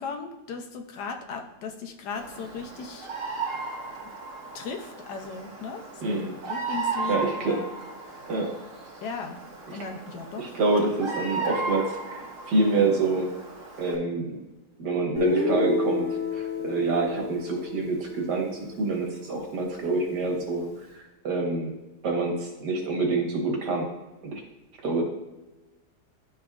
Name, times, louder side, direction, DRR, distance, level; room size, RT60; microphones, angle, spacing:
voice 1, 0.0-3.1 4.5-7.7 9.0-9.4 9.7-10.5, left 5 dB, 80° left, 4 dB, 1.4 m, -37 dB
Bird vocalization bird call bird song, 2.1-14.0, right 3 dB, 55° right, 1.5 m, -35 dB
voice 2, 6.0-6.3 7.1-7.6 8.3-8.5 9.7-9.8 10.4-13.3 13.8-14.4 14.8-21.7 22.0-23.9 24.2-24.4 24.8-25.1, right 3 dB, 80° right, 1 dB, 1.8 m, -27 dB
Guitar, 15.1-19.1, left 2 dB, 20° left, 2.5 m, -29 dB
11.5 x 4.3 x 2.4 m, 1.1 s
omnidirectional pair, 1.8 m